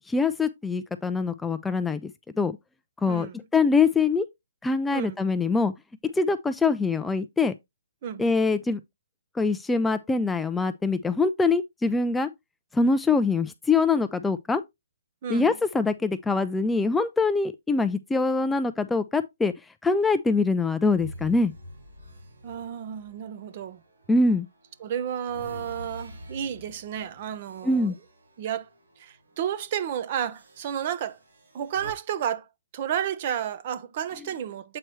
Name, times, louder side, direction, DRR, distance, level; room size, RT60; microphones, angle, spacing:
voice 1, 0.0-2.1 2.4-2.6 3.0-3.3 3.5-4.3 4.6-5.7 6.1-7.5 8.2-8.8 9.4-12.3 12.7-14.6 15.3-19.5 19.8-21.5 24.1-24.5 27.6-27.9, left 3 dB, 5° left, 0.3 m, -24 dB
voice 2, 3.0-3.4 4.9-5.2 8.0-8.3 15.2-15.6 22.4-23.8 24.8-27.9 28.4-28.7 29.0-31.2 31.5-32.5 32.7-34.8, right 9 dB, 40° right, 0.7 m, -32 dB
sound 1, 20.8-24.2 24.6-29.0 29.3-29.5 30.3-31.9, equal, 85° right, 3.2 m, -46 dB
7.7 x 4.5 x 3.1 m
hypercardioid pair, 155°, 0 cm